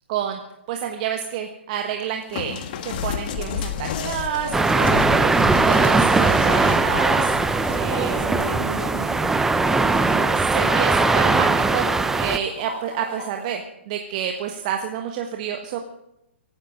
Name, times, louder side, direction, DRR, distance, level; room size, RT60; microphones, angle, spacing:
voice 1, 0.1-0.4 0.7-2.6 2.8-5.3 5.6-7.3 7.7-8.2 10.0-11.9 12.2-15.8, right 9 dB, 35° right, 4 dB, 1.4 m, -29 dB
sound 1, 2.3-9.3 9.8-10.4 11.3-11.6, left 7 dB, 40° left, 1.5 m, -32 dB
sound 2, 3.9-13.6, left 2 dB, 65° left, 4.8 m, -38 dB
sound 3, 4.5-12.4, right 3 dB, 5° right, 0.5 m, -20 dB
voice 2, 7.7-9.3, right 4 dB, 60° right, 3 dB, 4.5 m, -35 dB
23.0 x 9.8 x 5.1 m, 0.85 s
figure-of-eight pair, 125°, 7 cm